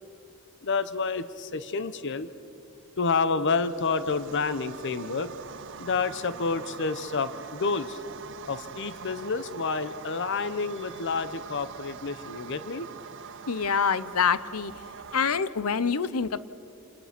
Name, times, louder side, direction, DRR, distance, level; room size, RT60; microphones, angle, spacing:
voice 1, 0.6-2.3 3.0-5.3 5.8-8.0 8.5-12.9, left 4 dB, 55° left, 13 dB, 0.8 m, -29 dB
sound 1, 3.5-15.4, right 6 dB, 60° right, 0.6 m, -43 dB
voice 2, 13.5-14.7 15.1-16.4, left 6 dB, 85° left, 15 dB, 0.8 m, -26 dB
28.0 x 20.5 x 6.0 m, 2.5 s
head